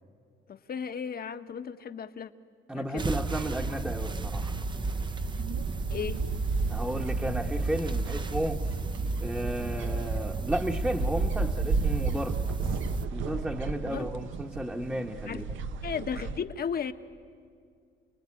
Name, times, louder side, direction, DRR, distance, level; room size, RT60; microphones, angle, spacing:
voice 1, 0.5-2.3 2.7-3.1 5.9-6.2 13.8-14.1 15.3-15.4 15.8-16.9, left 7 dB, 50° left, 10 dB, 1.2 m, -35 dB
voice 2, 2.7-4.5 6.7-8.6 9.2-12.4 13.1-15.4, right 1 dB, 5° right, 2 dB, 1.1 m, -33 dB
sound 1, 3.0-13.1, right 3 dB, 25° right, 0.7 m, -32 dB
sound 2, 3.1-16.4, right 4 dB, 75° right, 1.1 m, -36 dB
29.5 x 20.0 x 9.9 m, 2.2 s
cardioid pair, 90°, 20 cm